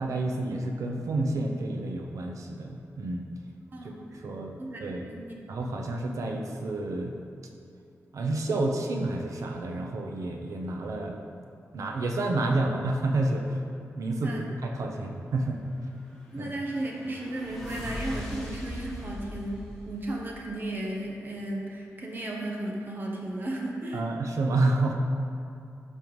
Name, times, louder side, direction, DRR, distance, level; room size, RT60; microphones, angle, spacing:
voice 1, 0.0-3.2 4.2-4.5 4.8-5.0 5.5-7.1 8.1-11.2 11.7-13.6 14.0-15.6 16.4-16.5 23.9-24.9, right 2 dB, 80° right, 2 dB, 0.8 m, -29 dB
voice 2, 3.7-4.2 4.6-5.4 14.2-14.5 16.3-24.0, right 1 dB, 40° right, -1 dB, 0.9 m, -35 dB
sound 1, 15.9-20.9, equal, 5° left, 1.4 m, -41 dB
12.0 x 5.6 x 3.2 m, 2.5 s
wide cardioid pair, 175°, 5 cm